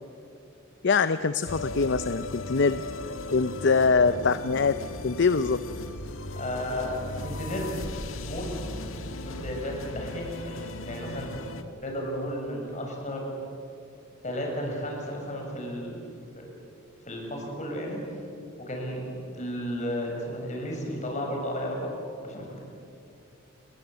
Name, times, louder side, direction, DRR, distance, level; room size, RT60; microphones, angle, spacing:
voice 1, 0.8-2.8 3.3-4.7 5.0-5.6, left 4 dB, 60° left, 12 dB, 0.6 m, -23 dB
sound 1, 1.5-11.6, left 2 dB, 80° left, 1.7 m, -37 dB
voice 2, 6.3-7.0 7.2-7.8 8.2-8.5 8.9-11.3 11.8-13.3 14.2-16.0 16.3-16.5 17.1-18.0 18.6-22.0 22.2-22.6, equal, 35° left, 1 dB, 6.6 m, -33 dB
29.5 x 20.5 x 8.2 m, 2.5 s
head